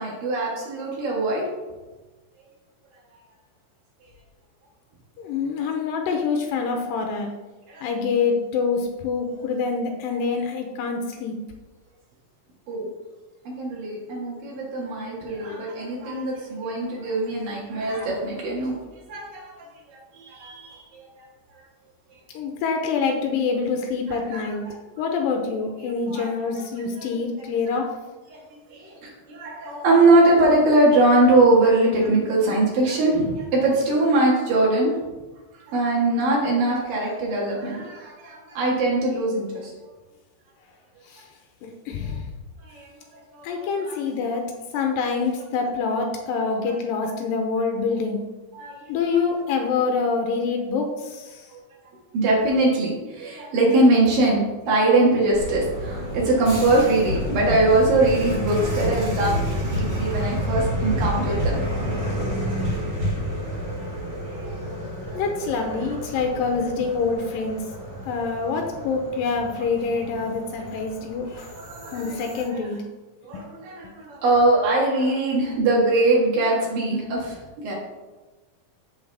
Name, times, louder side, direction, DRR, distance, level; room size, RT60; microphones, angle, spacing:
voice 1, 0.0-1.4 7.7-7.9 12.7-12.9 13.4-18.7 19.1-19.5 20.1-21.3 24.3-24.4 26.1-26.3 28.3-28.4 28.7-35.0 35.7-39.7 42.6-42.9 43.3-44.0 48.5-48.8 49.1-49.2 52.1-54.4 54.7-59.4 59.6-61.6 63.8-63.9 64.3-64.6 65.1-65.2 71.3-72.0 72.3-72.4 73.2-77.8, right 2 dB, 80° right, -4 dB, 3.4 m, -22 dB
voice 2, 5.2-7.3 7.8-11.4 22.3-24.6 25.0-28.0 41.1-41.3 41.6-42.2 43.4-48.2 48.9-51.5 59.0-59.2 62.7-63.0 65.1-67.6 68.1-71.5 71.9-72.8 73.3-73.4, left 5 dB, 85° left, 3 dB, 2.5 m, -26 dB
sound 1, 55.3-72.5, equal, 25° right, 2.3 m, -29 dB
8.0 x 7.2 x 3.4 m, 1.2 s
omnidirectional pair, 3.9 m